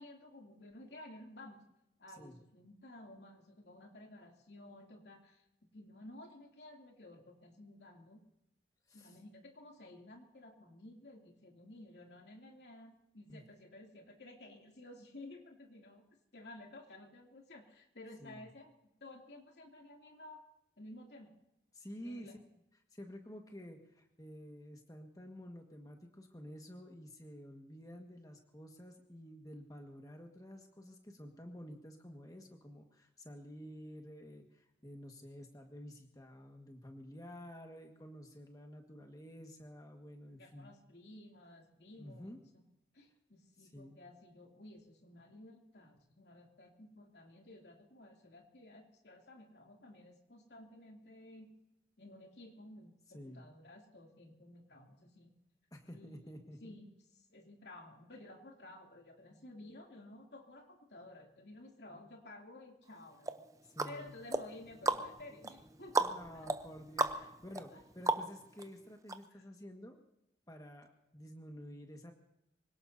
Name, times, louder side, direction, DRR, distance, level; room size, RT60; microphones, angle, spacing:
voice 1, 0.0-1.6 2.0-5.4 5.7-8.2 8.9-16.1 16.3-18.7 19.0-20.4 20.8-21.3 22.0-22.3 40.3-42.6 42.9-51.6 52.0-55.3 55.9-56.3 56.6-56.9 57.3-63.5 63.8-66.1 66.3-66.5 67.1-67.3 67.7-67.8 69.3-69.4, left 1 dB, 75° left, 1 dB, 2.8 m, -54 dB
voice 2, 21.7-22.4 22.9-40.7 42.0-42.4 43.6-44.0 53.1-53.4 55.7-56.7 63.6-64.2 66.0-70.0 70.5-72.1, equal, 20° left, 3 dB, 1.6 m, -51 dB
sound 1, 63.2-68.6 69.1-69.2, right 2 dB, 20° right, 0.7 m, -36 dB
25.5 x 18.0 x 2.8 m, 0.84 s
head